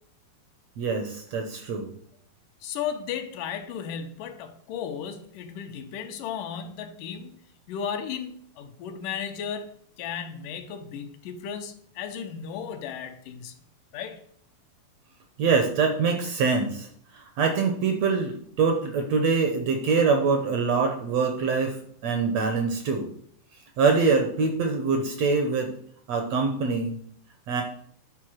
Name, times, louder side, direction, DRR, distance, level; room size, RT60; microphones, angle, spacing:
voice 1, 0.8-1.9 15.4-16.9 17.1-21.8 22.0-23.1 23.8-25.7 26.1-27.0 27.5-27.6, right 4 dB, 70° right, 4 dB, 1.7 m, -24 dB
voice 2, 2.6-7.4 7.7-13.5 13.9-14.2, left 8 dB, 80° left, 6 dB, 2.3 m, -35 dB
9.6 x 3.9 x 6.2 m, 0.64 s
omnidirectional pair, 3.8 m